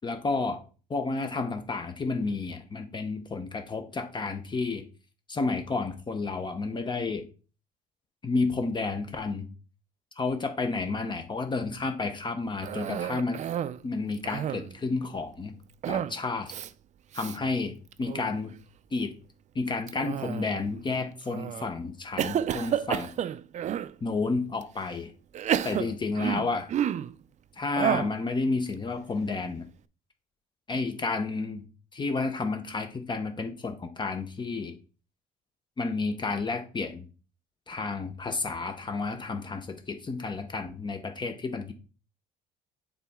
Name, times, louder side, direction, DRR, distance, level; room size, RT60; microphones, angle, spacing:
voice 1, 0.0-0.6 0.9-4.8 5.3-7.3 8.2-9.5 10.2-13.4 13.8-15.6 15.9-16.5 17.1-18.5 18.9-19.1 19.5-23.1 24.0-25.1 25.6-26.7 27.6-29.7 30.7-31.6 31.9-34.7 35.8-37.1 37.7-41.7, left 3 dB, 25° left, 6 dB, 0.8 m, -31 dB
Cough, 12.6-13.8 14.1-14.8 15.8-16.2 16.5-16.7 17.1-17.4 17.9-18.4 19.9-20.7 21.3-21.7 22.2-23.9 24.6-24.7 25.3-27.2 27.8-28.2, right 10 dB, 45° right, 0.4 m, -30 dB
7.4 x 4.1 x 3.6 m, 0.37 s
cardioid pair, 110°, 17 cm